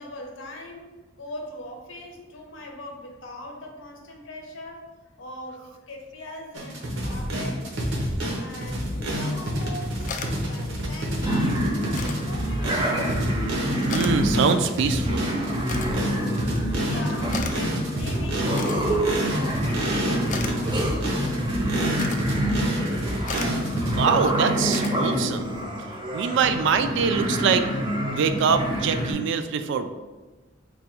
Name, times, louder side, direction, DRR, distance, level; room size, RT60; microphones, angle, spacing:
voice 1, 0.0-4.9 5.2-7.6 8.4-12.9 16.9-21.6, left 1 dB, 80° left, 2 dB, 0.7 m, -41 dB
sound 1, 6.5-24.0, equal, 90° right, 0.9 m, -28 dB
sound 2, 8.7-25.6, left 4 dB, 40° left, 0.3 m, -41 dB
sound 3, 11.2-29.1, right 1 dB, 25° right, 0.6 m, -27 dB
voice 2, 13.8-15.3 23.7-25.6 26.1-27.7 28.1-29.9, right 6 dB, 65° right, 9 dB, 0.3 m, -24 dB
3.4 x 2.2 x 4.3 m, 1.2 s
head